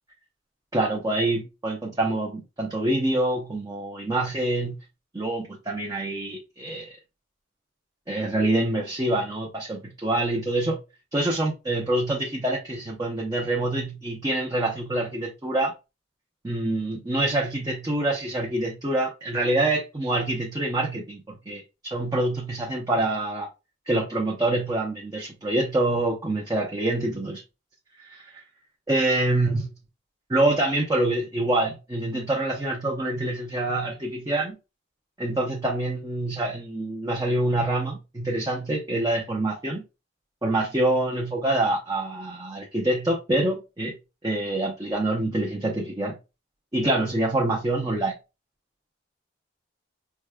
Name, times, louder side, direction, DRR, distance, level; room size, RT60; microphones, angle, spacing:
voice 1, 0.7-4.8 5.1-6.9 8.1-10.8 11.1-15.7 16.4-23.5 23.9-27.4 28.0-28.4 28.9-29.7 30.3-34.6 35.2-39.8 40.4-43.9 44.2-46.2 46.7-48.2, right 1 dB, 20° right, 0.5 m, -26 dB
4.6 x 2.2 x 2.2 m
head